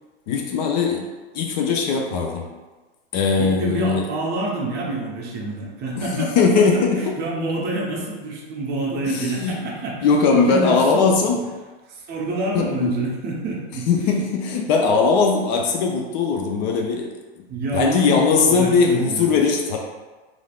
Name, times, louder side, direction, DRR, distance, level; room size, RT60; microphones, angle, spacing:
voice 1, 0.3-1.0 1.3-2.5 3.1-4.1 6.0-7.2 9.1-9.6 10.0-11.4 12.5-12.9 13.9-17.1 17.7-19.8, left 5 dB, 45° left, 1 dB, 0.5 m, -19 dB
voice 2, 3.4-6.4 6.7-11.1 12.1-13.9 17.5-19.4, right 2 dB, 30° right, -2 dB, 0.6 m, -27 dB
3.1 x 2.5 x 2.3 m, 1.3 s
hypercardioid pair, 110°, 31 cm